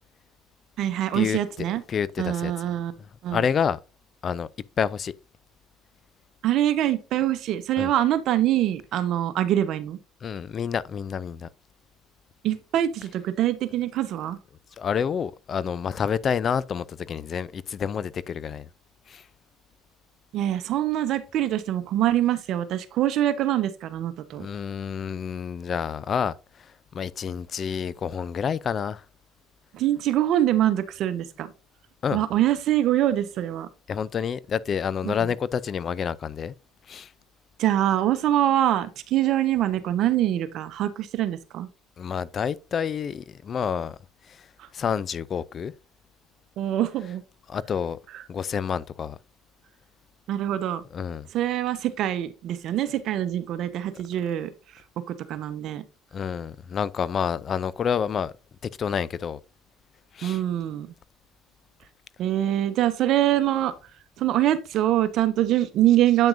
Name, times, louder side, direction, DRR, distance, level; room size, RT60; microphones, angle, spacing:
voice 1, 0.8-1.8 2.2-2.9 3.2-3.4 6.4-10.0 12.4-14.4 20.3-24.5 29.7-31.5 32.1-33.7 35.0-35.2 37.6-41.7 46.6-47.2 50.3-50.8 51.3-54.5 55.1-55.8 60.2-60.9 62.2-63.7 64.2-66.3, right 12 dB, 60° right, 0.9 m, -24 dB
voice 2, 1.9-2.5 3.3-3.8 4.2-4.5 4.8-5.1 7.8-7.9 10.2-11.5 14.8-18.7 19.1-19.2 24.4-26.3 26.6-29.0 32.0-32.2 33.9-36.5 36.9-37.1 42.0-44.0 44.3-44.4 44.7-45.7 47.5-48.0 48.3-49.2 50.9-51.3 56.1-58.3 58.8-59.4 60.1-60.4, left 7 dB, 40° left, 0.4 m, -28 dB
8.6 x 5.9 x 2.6 m
supercardioid pair, 85°, 0 cm